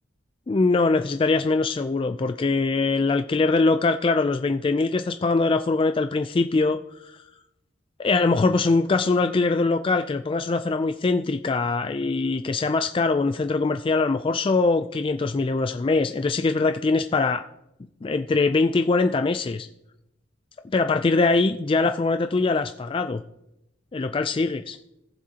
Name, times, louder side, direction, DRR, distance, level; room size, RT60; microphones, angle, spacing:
voice 1, 0.5-7.2 8.0-17.4 18.0-19.7 20.7-23.2 23.9-24.8, left 3 dB, 25° left, 8 dB, 0.3 m, -22 dB
19.0 x 7.5 x 2.8 m, 0.86 s
head